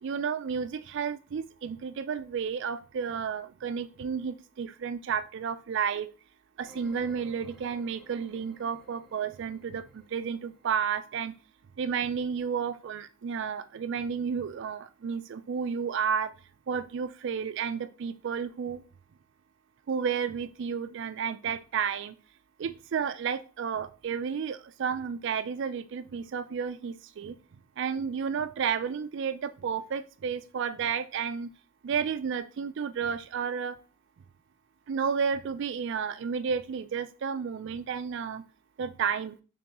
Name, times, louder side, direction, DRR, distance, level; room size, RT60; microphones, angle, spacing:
voice 1, 0.0-6.1 6.6-11.3 11.8-16.3 16.7-18.8 19.9-22.1 22.6-27.4 27.8-31.5 31.8-33.8 34.9-38.4 38.8-39.4, right 6 dB, 55° right, 12 dB, 0.3 m, -32 dB
sound 1, 6.6-10.9, right 2 dB, ahead, 0.6 m, -56 dB
3.7 x 3.4 x 2.9 m, 0.35 s
head